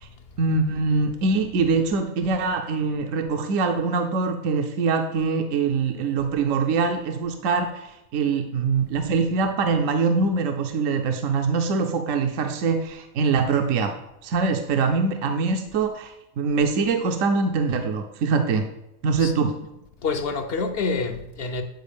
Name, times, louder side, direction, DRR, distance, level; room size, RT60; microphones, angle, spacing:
voice 1, 0.4-13.9 14.2-18.7 19.0-19.5, right 4 dB, 70° right, 1.0 m, -23 dB
voice 2, 20.0-21.6, left 4 dB, 50° left, 0.8 m, -27 dB
9.2 x 4.8 x 5.1 m
omnidirectional pair, 1.5 m